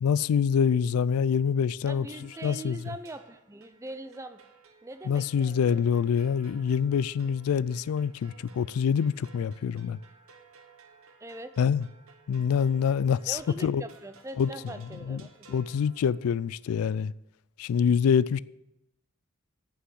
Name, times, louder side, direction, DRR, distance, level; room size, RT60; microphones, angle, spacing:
voice 1, 0.0-2.1 2.4-2.8 5.1-10.0 11.6-11.9 12.3-13.8 14.4-14.5 15.1-15.2 15.5-17.1 17.6-18.4, left 7 dB, 80° left, 0.3 m, -25 dB
voice 2, 1.9-4.4 4.8-5.9 11.2-11.6 13.3-15.6, right 2 dB, 15° right, 0.5 m, -42 dB
sound 1, 2.1-16.6, right 5 dB, 70° right, 1.0 m, -57 dB
8.7 x 5.7 x 7.8 m
head